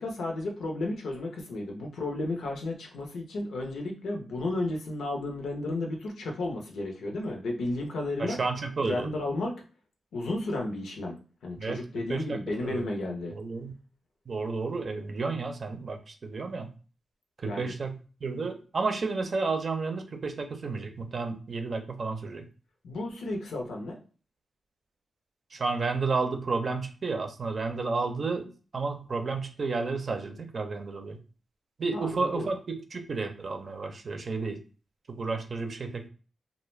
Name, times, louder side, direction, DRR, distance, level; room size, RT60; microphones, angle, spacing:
voice 1, 0.0-8.4 8.8-9.5 10.1-11.2 11.4-13.3 17.4-17.7 22.8-24.0 31.9-32.5, left 2 dB, 85° left, 1 dB, 0.6 m, -33 dB
voice 2, 8.2-9.1 11.6-11.8 12.1-12.9 13.3-13.7 14.3-16.7 17.4-22.4 25.5-31.2 31.8-34.6 35.1-36.1, right 4 dB, 55° right, 5 dB, 0.5 m, -32 dB
2.4 x 2.1 x 3.1 m, 0.36 s
cardioid pair, 50°, 0 cm